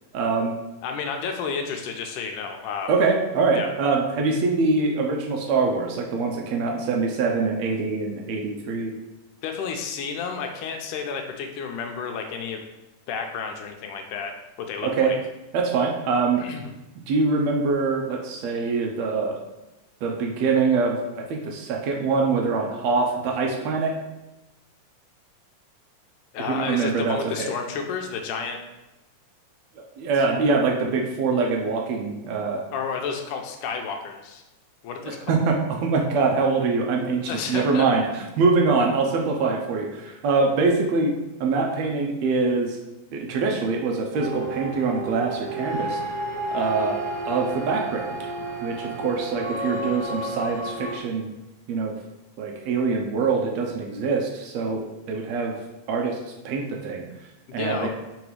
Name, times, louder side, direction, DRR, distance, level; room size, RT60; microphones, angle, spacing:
voice 1, 0.1-0.5 2.9-8.9 14.8-15.1 15.5-16.4 17.1-19.4 20.0-23.9 26.5-27.5 29.8-32.6 35.0-41.1 41.4-42.8 43.1-46.0 46.5-48.2 48.6-51.3 51.7-51.9 52.4-55.6 55.9-56.2 56.4-57.1 57.5-57.9, right 4 dB, 80° right, 1 dB, 1.5 m, -24 dB
voice 2, 0.8-2.9 3.5-3.7 9.4-12.6 13.1-14.3 14.7-15.2 16.4-16.7 26.3-28.6 32.7-34.4 34.8-35.3 37.3-37.9 57.5-57.9, left 6 dB, 80° left, 3 dB, 2.1 m, -31 dB
sound 1, 44.1-51.0, right 2 dB, 60° right, 1.3 m, -31 dB
5.3 x 4.0 x 4.7 m, 1.0 s
omnidirectional pair, 3.8 m